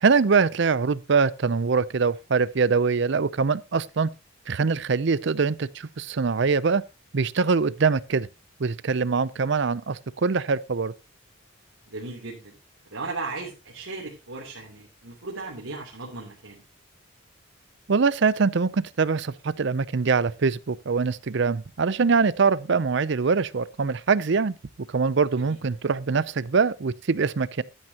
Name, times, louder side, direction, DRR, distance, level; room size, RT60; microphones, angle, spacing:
voice 1, 0.0-4.1 4.5-6.8 7.1-8.3 8.6-10.9 17.9-24.5 24.9-27.6, right 5 dB, 60° right, 0.5 m, -23 dB
voice 2, 11.9-12.5 12.8-16.6 25.4-25.6, right 3 dB, 80° right, 3.1 m, -36 dB
13.5 x 9.8 x 2.9 m
head